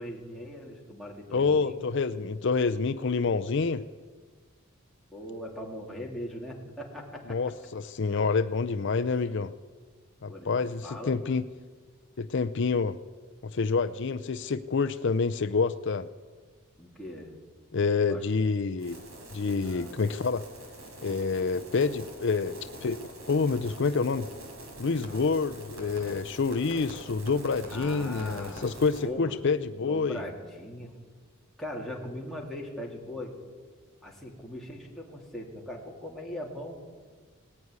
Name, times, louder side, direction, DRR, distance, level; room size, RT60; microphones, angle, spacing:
voice 1, 0.0-1.8 5.1-7.5 10.3-11.4 16.8-17.3 18.1-18.2 19.6-19.9 27.7-28.7 29.0-29.4 29.8-30.9 31.6-33.3 34.0-36.8, left 1 dB, ahead, -3 dB, 3.4 m, -40 dB
voice 2, 1.3-3.8 7.3-9.5 10.2-11.5 12.2-13.0 13.4-16.1 17.7-19.0 19.3-20.4 21.0-24.3 24.8-30.2, left 4 dB, 55° left, 11 dB, 0.5 m, -27 dB
sound 1, 18.8-29.0, right 1 dB, 75° right, 5.1 m, -45 dB
19.0 x 14.5 x 9.6 m, 1.5 s
head